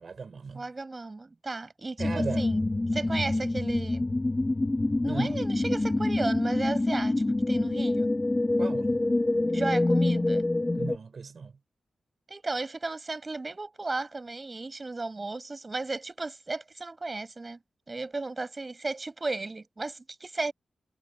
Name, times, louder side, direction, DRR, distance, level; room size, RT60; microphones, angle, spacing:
voice 1, 0.0-0.7 2.0-2.5 5.1-5.4 8.6-9.0 10.7-11.5, right 5 dB, 45° right, 5.1 m, -37 dB
voice 2, 0.5-2.7 2.9-4.0 5.0-7.1 7.5-8.1 9.5-10.5 12.3-17.6 17.9-20.5, right 3 dB, 25° right, 7.7 m, -34 dB
sound 1, 2.0-11.0, left 2 dB, 20° left, 1.2 m, -26 dB
wide cardioid pair, 175°, 0 cm